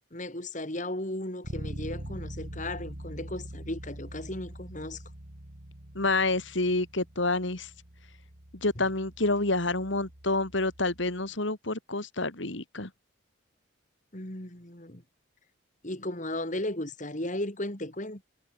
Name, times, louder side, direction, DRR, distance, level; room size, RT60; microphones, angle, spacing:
voice 1, 0.1-5.0 14.1-15.0 15.8-18.2, left 1 dB, 40° left, 3.4 m, -35 dB
Bass guitar, 1.4-11.2, right 1 dB, 55° right, 3.5 m, -43 dB
voice 2, 5.9-7.7 8.6-12.9, left 2 dB, 70° left, 2.7 m, -28 dB
head